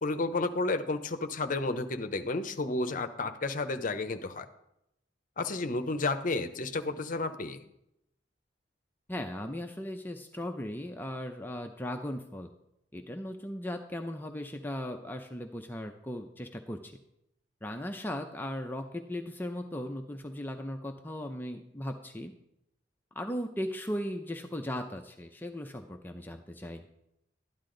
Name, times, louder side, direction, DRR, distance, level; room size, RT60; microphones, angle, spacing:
voice 1, 0.0-4.5 5.4-7.6, left 3 dB, 45° left, 9 dB, 0.7 m, -31 dB
voice 2, 9.1-12.5 12.9-16.9 17.6-22.3 23.1-26.8, left 1 dB, 10° left, 4 dB, 0.6 m, -37 dB
12.5 x 10.0 x 3.9 m, 0.82 s
head